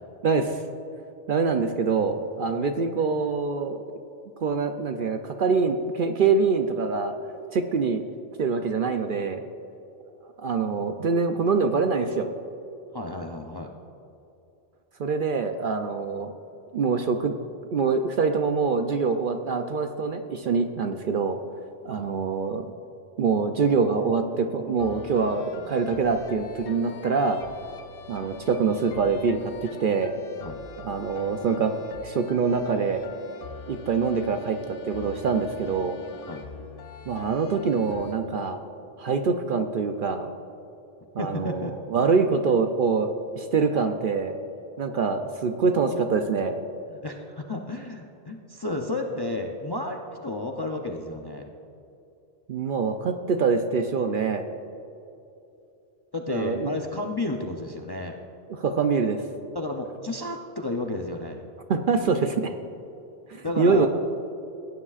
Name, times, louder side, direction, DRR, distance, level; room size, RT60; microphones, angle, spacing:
voice 1, 0.2-0.6 1.3-3.8 4.4-7.2 7.5-8.0 8.4-9.4 10.4-12.3 15.0-16.3 16.7-17.4 17.7-21.4 21.8-22.7 23.2-27.4 28.1-30.1 30.8-31.7 32.0-33.0 33.7-36.0 37.1-38.6 39.0-40.3 41.1-44.4 44.8-46.6 52.5-54.5 56.3-56.7 58.5-59.2 61.7-62.5 63.3-63.9, right 5 dB, 60° right, 6 dB, 0.6 m, -25 dB
voice 2, 12.9-13.7 21.9-22.1 30.4-30.6 36.3-36.4 41.2-41.7 46.9-51.5 56.1-58.2 59.5-61.4 63.4-63.9, left 2 dB, 30° left, 2 dB, 0.5 m, -32 dB
sound 1, 24.8-38.1, left 5 dB, 60° left, 0.7 m, -44 dB
17.0 x 9.7 x 2.4 m, 2.8 s
omnidirectional pair, 1.2 m